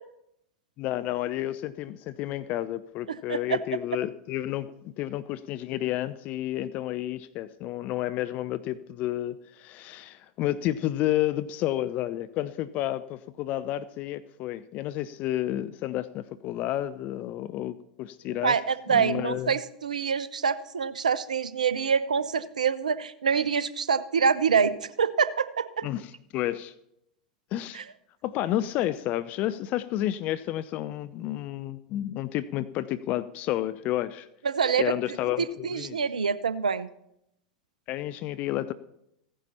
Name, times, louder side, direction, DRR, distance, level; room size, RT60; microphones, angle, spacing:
voice 1, 0.8-18.5 18.9-19.6 25.8-26.7 27.5-27.8 28.2-34.3 34.8-36.0 37.9-38.7, left 14 dB, 40° left, 14 dB, 0.5 m, -31 dB
voice 2, 3.1-3.6 18.4-25.9 27.7-27.8 34.4-34.9 35.4-36.9, right 6 dB, 75° right, 16 dB, 0.6 m, -26 dB
15.5 x 10.0 x 4.3 m, 0.79 s
figure-of-eight pair, 85°, 4 cm